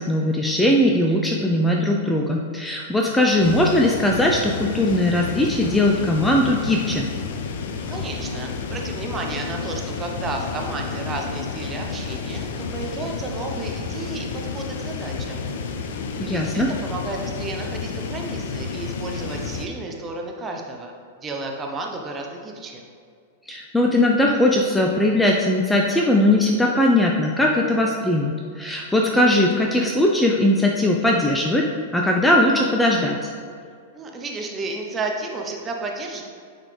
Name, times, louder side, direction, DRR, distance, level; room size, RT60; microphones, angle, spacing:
voice 1, 0.0-7.1 16.2-16.7 23.5-33.3, left 1 dB, 5° left, -1 dB, 0.5 m, -19 dB
sound 1, 3.4-19.7, left 5 dB, 60° left, 0.5 m, -31 dB
voice 2, 7.5-15.4 16.1-20.9 21.2-22.8 33.9-36.2, right 2 dB, 20° right, 1 dB, 0.7 m, -32 dB
8.7 x 4.1 x 3.3 m, 2.2 s
figure-of-eight pair, 100°, 0 cm